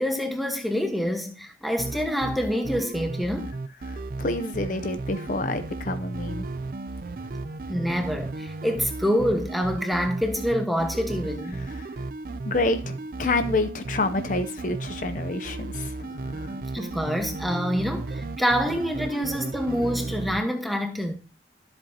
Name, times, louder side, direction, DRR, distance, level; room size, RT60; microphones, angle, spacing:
voice 1, 0.0-3.6 7.7-11.7 12.5-12.6 13.4-13.5 16.7-21.1, equal, ahead, 1.2 m, -26 dB
sound 1, 1.8-20.4, right 3 dB, 50° right, 0.4 m, -34 dB
voice 2, 3.9-6.5 11.7-11.9 12.4-16.6, left 2 dB, 45° left, 0.6 m, -28 dB
12.5 x 7.8 x 2.8 m
head